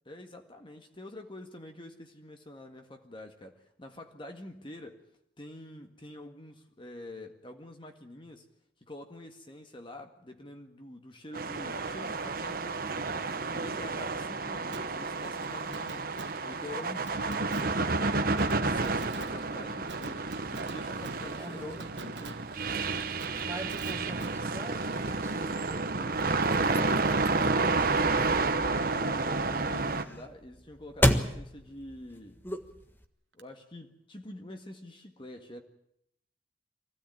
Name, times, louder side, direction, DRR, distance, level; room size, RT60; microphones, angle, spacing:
voice 1, 0.1-5.0 5.4-8.5 8.8-13.2 13.5-16.1 16.4-22.5 28.6-32.4 33.3-35.6, left 1 dB, 30° left, 5 dB, 1.8 m, -46 dB
sound 1, 11.3-30.0, right 3 dB, 55° right, 1.4 m, -30 dB
Fireworks, 14.7-26.4 26.7-26.8 33.4-33.5, right 3 dB, 80° right, 1.5 m, -47 dB
voice 2, 21.3-21.9 23.5-26.7, right 1 dB, 15° right, 4 dB, 2.3 m, -44 dB
sound 2, 26.0-33.0, left 1 dB, 10° left, 1.5 m, -33 dB
24.0 x 16.5 x 9.1 m, 0.76 s
head